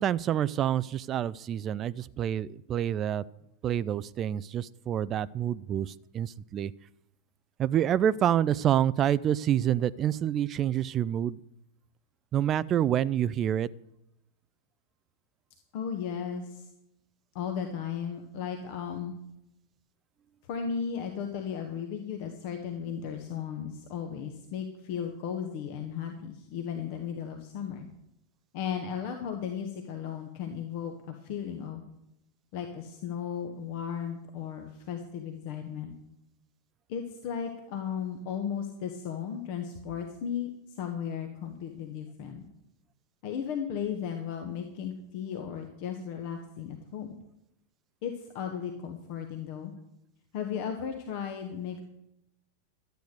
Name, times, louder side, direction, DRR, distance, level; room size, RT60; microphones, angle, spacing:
voice 1, 0.0-3.2 3.6-6.7 7.6-11.4 12.3-13.7, right 10 dB, 30° right, 19 dB, 0.4 m, -27 dB
voice 2, 15.7-16.7 17.3-19.1 20.4-27.9 28.5-31.8 32.5-35.9 36.9-42.4 43.2-47.2 48.0-49.7 50.3-51.8, left 7 dB, 45° left, 5 dB, 1.4 m, -35 dB
13.0 x 9.1 x 6.7 m, 0.84 s
figure-of-eight pair, 90°, 0 cm